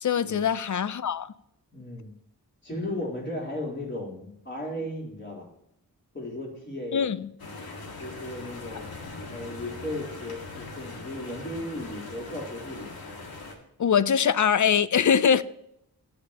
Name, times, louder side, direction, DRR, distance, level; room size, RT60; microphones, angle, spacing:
voice 1, 0.0-1.3 6.9-7.2 13.8-15.4, left 7 dB, 55° left, 0.6 m, -22 dB
voice 2, 1.7-2.1 2.6-5.5 6.1-7.0 8.0-8.9 9.3-12.9, left 1 dB, 30° left, 3.9 m, -35 dB
sound 1, 7.4-13.6, left 3 dB, 75° left, 2.0 m, -41 dB
18.5 x 6.7 x 2.9 m
wide cardioid pair, 60°, 37 cm